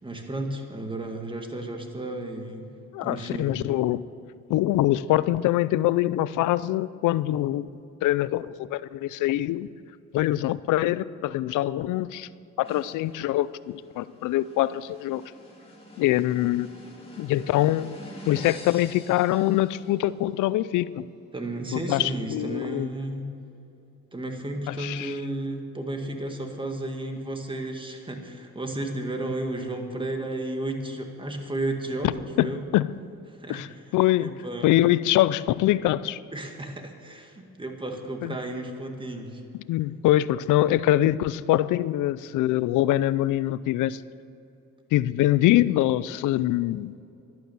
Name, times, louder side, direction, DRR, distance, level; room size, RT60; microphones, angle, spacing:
voice 1, 0.0-2.7 3.0-3.5 21.3-23.3 24.1-32.7 33.3-34.8 36.3-39.4, right 1 dB, 15° right, 4 dB, 1.9 m, -33 dB
voice 2, 2.9-4.0 4.5-7.7 8.0-9.7 10.1-12.3 12.6-15.2 16.0-16.7 17.2-18.0 18.3-21.0 21.9-22.9 24.7-25.1 32.4-32.5 32.7-32.9 33.5-33.7 33.9-34.3 34.6-36.2 38.2-38.3 39.7-44.0 44.9-46.9, left 14 dB, 85° left, 17 dB, 0.5 m, -24 dB
sound 1, 12.6-20.2, left 1 dB, 20° left, 3.3 m, -46 dB
11.5 x 11.5 x 6.9 m, 2.7 s
cardioid pair, 90°, 30 cm